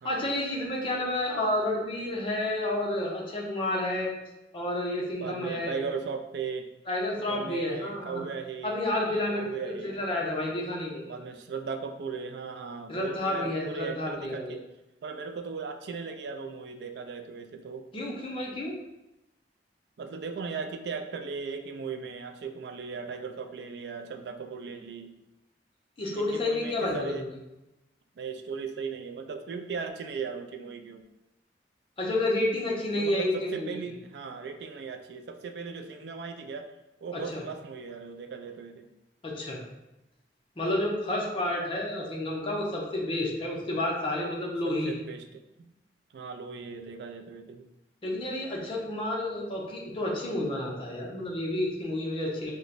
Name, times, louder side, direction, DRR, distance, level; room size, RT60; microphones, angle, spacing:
voice 1, 0.0-4.1 4.5-5.8 6.9-8.2 8.6-11.2 12.9-14.6 17.9-18.7 26.0-27.3 32.0-33.7 37.1-37.4 39.2-39.6 40.6-44.9 48.0-52.5, left 1 dB, 30° left, -3 dB, 0.6 m, -30 dB
voice 2, 5.2-6.7 7.3-8.8 9.1-10.0 11.1-14.6 15.0-17.8 20.0-25.1 26.1-27.2 28.2-31.0 32.9-36.7 37.0-38.9 44.6-45.2 45.6-45.7 46.1-47.6, right 5 dB, 65° right, 6 dB, 0.3 m, -37 dB
3.0 x 2.1 x 3.9 m, 0.95 s
head